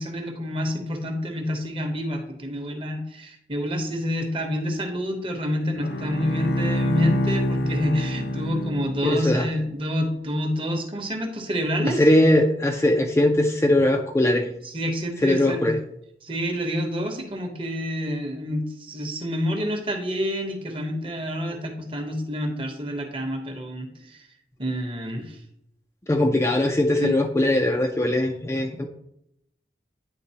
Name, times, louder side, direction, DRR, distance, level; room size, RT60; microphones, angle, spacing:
voice 1, 0.0-12.0 14.6-15.7 16.2-24.2 24.6-25.4 27.0-27.2, equal, 30° right, 4 dB, 0.9 m, -28 dB
Bowed string instrument, 5.8-9.3, equal, 65° left, 0.6 m, -26 dB
voice 2, 9.0-9.5 12.0-14.5 15.2-15.8 26.1-28.9, left 1 dB, 15° left, 2 dB, 0.4 m, -20 dB
9.7 x 3.8 x 2.8 m, 0.76 s
head